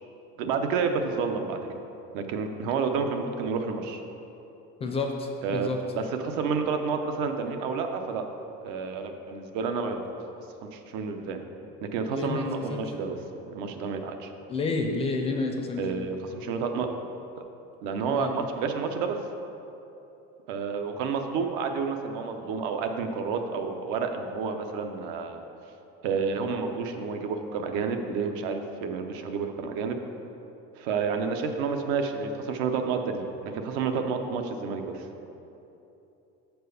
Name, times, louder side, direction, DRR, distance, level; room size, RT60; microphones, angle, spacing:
voice 1, 0.4-1.8 2.1-4.0 5.4-8.2 8.6-10.0 10.6-11.4 11.8-14.3 15.8-16.9 17.4-17.5 17.8-19.2 20.5-25.4 26.0-30.0 30.8-35.0, right 5 dB, 80° right, 5 dB, 0.8 m, -30 dB
voice 2, 4.8-5.8 12.1-12.8 14.5-15.8 18.1-18.3, left 3 dB, 20° left, 3 dB, 0.4 m, -30 dB
6.6 x 4.6 x 6.7 m, 2.9 s
cardioid pair, 170°, 30 cm